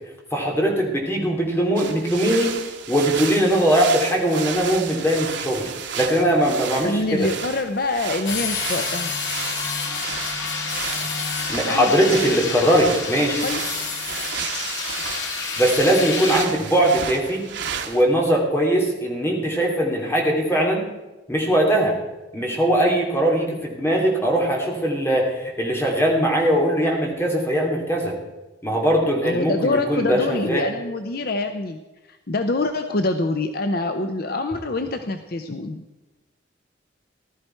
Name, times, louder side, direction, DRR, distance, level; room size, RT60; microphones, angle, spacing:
voice 1, 0.3-2.5 2.9-7.3 11.5-13.4 15.6-17.4 17.9-20.9 21.3-22.0 22.3-28.1 28.6-30.6, right 1 dB, 15° left, -1 dB, 2.7 m, -20 dB
sound 1, 1.8-18.0, right 7 dB, 85° right, 1.4 m, -33 dB
voice 2, 6.8-9.2 11.7-11.9 13.4-13.6 29.2-31.8 32.1-35.8, left 2 dB, 55° left, 7 dB, 0.7 m, -25 dB
sound 2, 8.3-16.5, left 4 dB, 85° left, 2.3 m, -28 dB
15.5 x 12.5 x 4.5 m, 1.1 s
head